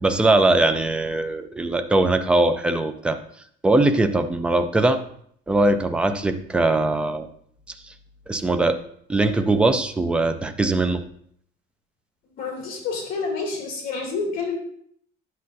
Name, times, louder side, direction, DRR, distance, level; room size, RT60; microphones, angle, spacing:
voice 1, 0.0-3.2 3.6-5.0 5.5-7.3 7.8-7.9 8.3-8.8 9.1-11.0, right 2 dB, 5° right, 8 dB, 0.3 m, -21 dB
voice 2, 12.4-14.5, left 4 dB, 50° left, -1 dB, 2.8 m, -28 dB
9.6 x 7.5 x 2.7 m, 0.64 s
cardioid pair, 175°, 18 cm